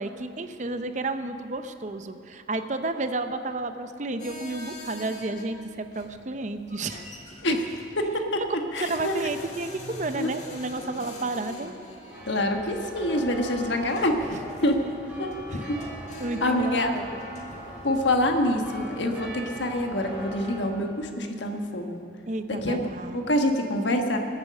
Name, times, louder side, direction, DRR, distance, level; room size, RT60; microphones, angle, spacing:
voice 1, 0.0-7.2 7.5-7.6 8.8-11.7 15.5-15.6 16.2-17.2 22.3-23.3, right 2 dB, 40° right, 9 dB, 0.6 m, -32 dB
sound 1, 4.2-18.0, left 1 dB, 40° left, 1.7 m, -44 dB
voice 2, 8.0-8.4 8.7-9.1 10.2-10.3 12.3-14.2 14.6-14.8 15.2-15.3 15.7-15.8 16.4-16.9 17.8-22.0 22.5-22.8 23.1-24.2, left 1 dB, 75° left, 4 dB, 1.3 m, -26 dB
sound 2, 12.1-20.7, equal, 10° right, 3.7 m, -40 dB
21.0 x 8.2 x 6.6 m, 2.6 s
head